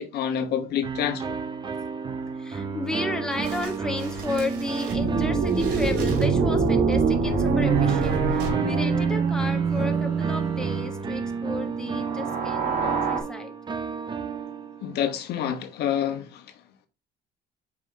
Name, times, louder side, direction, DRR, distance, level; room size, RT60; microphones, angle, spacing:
voice 1, 0.0-1.4 14.8-16.4, left 9 dB, 75° left, 1.1 m, -28 dB
sound 1, 0.8-6.6 7.7-15.1, right 5 dB, 25° right, 0.7 m, -33 dB
voice 2, 2.0-13.5, left 2 dB, 5° left, 1.1 m, -33 dB
sound 2, 3.3-8.5, equal, 80° right, 2.4 m, -36 dB
sound 3, 4.9-10.9 11.9-13.2, right 5 dB, 55° right, 1.8 m, -24 dB
7.2 x 4.9 x 2.8 m
cardioid pair, 110°, 17 cm